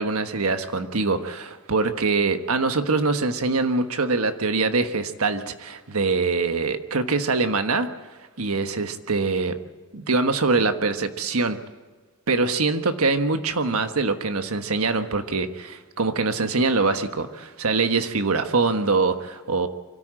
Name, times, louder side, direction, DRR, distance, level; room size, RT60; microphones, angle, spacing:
voice 1, 0.0-7.9 8.4-9.6 9.9-11.6 12.3-19.7, right 3 dB, 90° right, 8 dB, 1.3 m, -23 dB
24.5 x 13.5 x 7.7 m, 1.3 s
head